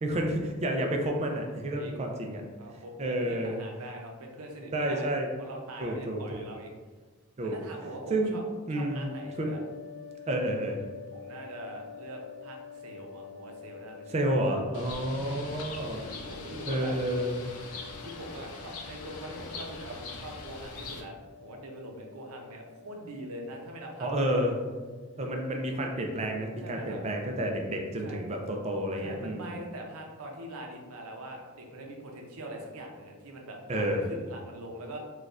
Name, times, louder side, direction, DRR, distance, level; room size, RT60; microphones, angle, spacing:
voice 1, 0.0-2.4 3.0-3.6 4.7-5.3 5.8-6.4 7.4-7.6 8.1-8.4 8.7-9.5 10.3-10.8 14.1-16.0 16.7-17.5 24.0-24.5 25.2-29.6 33.7-34.1, right 1 dB, 30° right, 2 dB, 0.3 m, -30 dB
voice 2, 1.7-2.3 2.6-5.1 5.4-6.7 7.4-8.4 8.7-9.6 11.1-14.6 15.0-15.6 16.3-17.0 18.0-24.4 26.6-27.0 28.0-28.2 29.0-35.0, right 1 dB, 85° right, 1 dB, 0.6 m, -43 dB
sound 1, 8.8-26.1, left 7 dB, 10° left, 1.4 m, -49 dB
Bird, 14.7-21.0, left 4 dB, 85° left, 0.5 m, -42 dB
4.1 x 2.3 x 2.4 m, 1.4 s
head